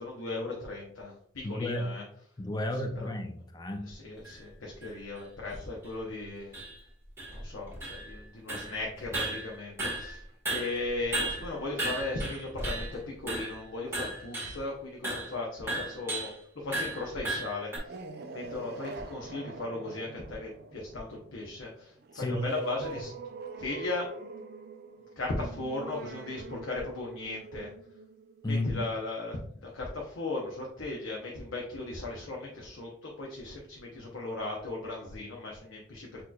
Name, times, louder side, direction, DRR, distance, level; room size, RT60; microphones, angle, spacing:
voice 1, 0.0-2.0 2.7-3.1 3.8-6.6 7.3-18.0 18.3-23.1 23.6-24.1 25.2-27.7 28.4-36.2, left 2 dB, 80° left, -2 dB, 0.8 m, -37 dB
voice 2, 1.4-1.9 2.4-3.9 22.1-22.4 28.4-28.8, left 1 dB, 20° left, 5 dB, 0.4 m, -32 dB
sound 1, 4.2-4.3 4.8-4.9 5.5-5.6 5.8-5.9 6.5-6.8 7.2-8.2 8.5-8.8 9.1-10.2 10.5-13.0 13.3-13.6 13.9-14.6 15.0-15.3 15.7-16.4 16.7-17.8, right 2 dB, 10° right, 1.3 m, -35 dB
sound 2, 17.6-28.8, right 4 dB, 50° right, 0.4 m, -44 dB
6.1 x 3.0 x 2.3 m, 0.65 s
head